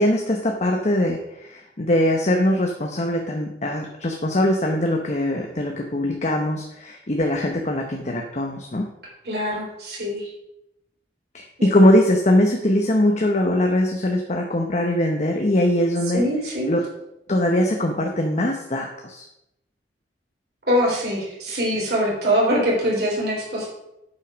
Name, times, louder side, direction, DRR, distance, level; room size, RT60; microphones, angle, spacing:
voice 1, 0.0-8.9 11.3-16.3 16.7-16.9 17.3-19.2, left 1 dB, 40° left, 2 dB, 0.8 m, -21 dB
voice 2, 9.2-10.3 11.6-11.7 16.1-16.7 20.7-23.7, equal, 65° right, -4 dB, 3.9 m, -23 dB
8.5 x 5.4 x 6.2 m, 0.85 s
head